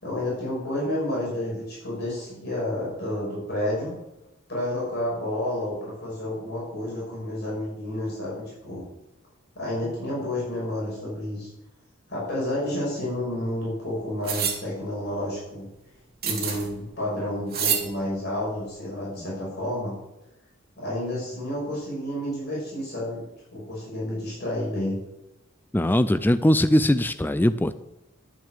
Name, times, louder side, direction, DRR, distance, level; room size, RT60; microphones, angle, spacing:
voice 1, 0.0-3.9 4.5-8.8 9.6-11.5 12.1-15.7 16.2-20.0 20.8-23.2 23.5-25.0, left 1 dB, 55° left, -6 dB, 6.2 m, -30 dB
sound 1, 14.2-14.6 16.2-16.7 17.5-17.9, right 7 dB, 50° right, 3.1 m, -26 dB
voice 2, 25.7-27.8, left 1 dB, 10° left, 12 dB, 0.4 m, -21 dB
11.5 x 7.6 x 8.2 m, 0.92 s
head